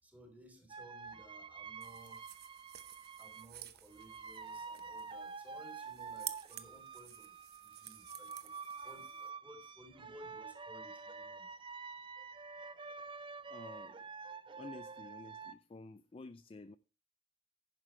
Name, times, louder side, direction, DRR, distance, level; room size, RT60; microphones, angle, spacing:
voice 1, 0.0-2.2 3.2-7.4 7.6-8.6 8.8-11.5 12.2-12.6, right 1 dB, 10° right, 3.2 m, -58 dB
sound 1, 0.7-3.5 3.9-15.5, right 5 dB, 25° right, 0.6 m, -48 dB
sound 2, 1.8-9.3, right 12 dB, 60° right, 0.9 m, -52 dB
voice 2, 13.5-14.0 14.6-16.8, left 3 dB, 30° left, 0.4 m, -51 dB
11.0 x 10.0 x 3.2 m
head